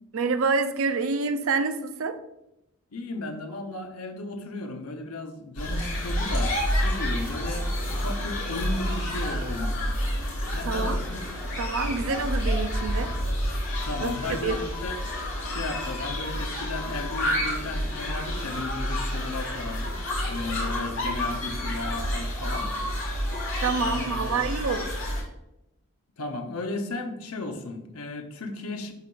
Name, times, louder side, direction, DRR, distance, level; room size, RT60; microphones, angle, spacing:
voice 1, 0.1-2.2 10.6-11.0 11.6-13.1 14.0-14.1 14.4-14.6 23.6-25.0, right 4 dB, 70° right, 10 dB, 0.5 m, -27 dB
voice 2, 2.9-10.0 10.5-11.2 13.8-15.1 15.4-22.7 23.8-24.5 26.2-28.9, left 2 dB, 85° left, 5 dB, 0.9 m, -35 dB
sound 1, 5.6-25.2, equal, 55° left, 2.3 m, -29 dB
Alarm, 12.7-13.2 13.7-14.2 14.7-15.2 15.7-16.2 16.7-17.2, left 9 dB, 40° left, 0.8 m, -43 dB
11.0 x 3.8 x 2.5 m, 0.87 s
head